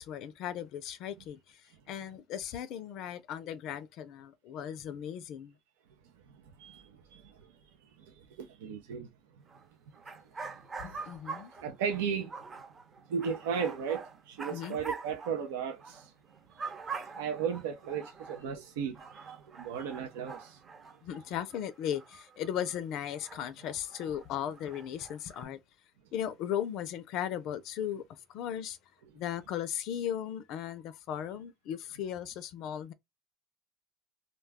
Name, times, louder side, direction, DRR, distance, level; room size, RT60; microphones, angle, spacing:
voice 1, 0.0-5.5 10.8-11.5 14.5-14.8 21.0-25.6 26.1-28.0 28.3-28.8 29.1-32.9, left 10 dB, 65° left, 0.4 m, -37 dB
voice 2, 8.4-9.1 11.6-12.3 13.1-16.1 17.2-19.0 19.6-20.6, right 7 dB, 85° right, 0.5 m, -35 dB
sound 1, 9.5-9.7 9.9-16.1 16.3-18.5 19.0-22.8 23.1-25.4, right 4 dB, 25° right, 0.8 m, -45 dB
2.2 x 2.2 x 3.4 m
supercardioid pair, 90°, 0 cm